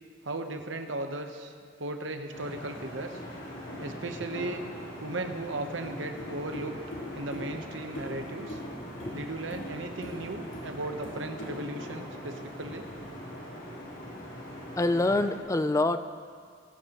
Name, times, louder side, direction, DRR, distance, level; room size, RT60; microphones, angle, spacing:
voice 1, 0.2-1.5 1.8-3.2 3.8-4.6 5.0-6.8 7.1-8.6 9.1-12.9, right 2 dB, 80° right, 6 dB, 1.0 m, -36 dB
sound 1, 2.3-15.4, equal, 75° left, 3.6 m, -40 dB
voice 2, 14.8-16.1, left 2 dB, 15° left, 11 dB, 0.4 m, -26 dB
20.5 x 12.0 x 3.0 m, 2.1 s
head